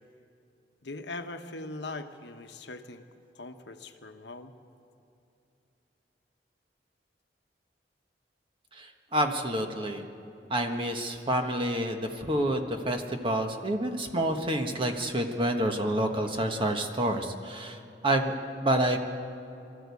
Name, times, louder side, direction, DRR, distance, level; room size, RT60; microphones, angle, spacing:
voice 1, 0.8-3.0 3.4-4.5, left 2 dB, 80° left, 7 dB, 1.1 m, -41 dB
voice 2, 8.7-10.0 10.5-19.0, right 1 dB, 30° right, 4 dB, 1.4 m, -28 dB
22.5 x 14.0 x 8.4 m, 2.8 s
head